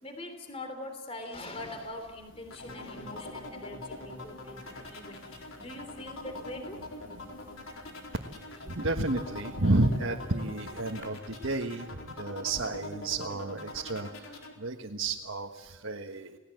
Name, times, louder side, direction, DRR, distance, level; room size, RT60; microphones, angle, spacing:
voice 1, 0.0-5.2 5.6-6.8 7.8-7.9 8.7-8.8, left 1 dB, 30° left, 6 dB, 3.4 m, -42 dB
sound 1, 1.3-11.1, left 2 dB, 65° left, 3.3 m, -56 dB
sound 2, 2.5-14.5, left 2 dB, 85° left, 4.3 m, -43 dB
voice 2, 8.7-11.9 12.2-14.3 14.6-16.4, right 2 dB, 75° right, 1 dB, 1.5 m, -31 dB
30.0 x 19.0 x 7.9 m, 1.2 s
head